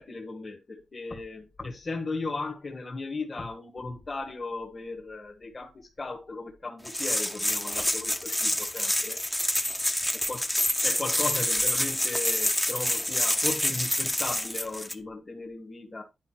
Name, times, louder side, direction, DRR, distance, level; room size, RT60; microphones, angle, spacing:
voice 1, 0.0-9.2 9.6-9.7 10.3-10.4 10.8-16.0, left 3 dB, 25° left, 1.6 m, -36 dB
sound 1, 6.9-14.9, left 1 dB, 5° left, 0.8 m, -27 dB
10.5 x 5.2 x 4.5 m
wide cardioid pair, 180°, 0 cm